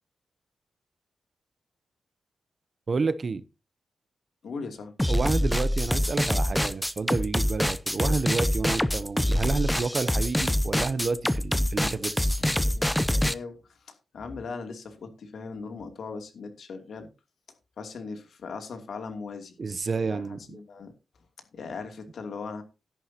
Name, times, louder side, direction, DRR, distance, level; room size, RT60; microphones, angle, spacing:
voice 1, 2.9-3.4 5.1-12.3 19.6-20.6, right 4 dB, 40° right, 0.7 m, -30 dB
voice 2, 4.4-4.9 12.4-17.1 17.8-19.5 20.1-20.9 21.5-22.6, left 4 dB, 70° left, 2.7 m, -39 dB
sound 1, 5.0-13.3, left 1 dB, 5° left, 0.5 m, -25 dB
13.0 x 11.0 x 2.8 m
wide cardioid pair, 160°, 0 cm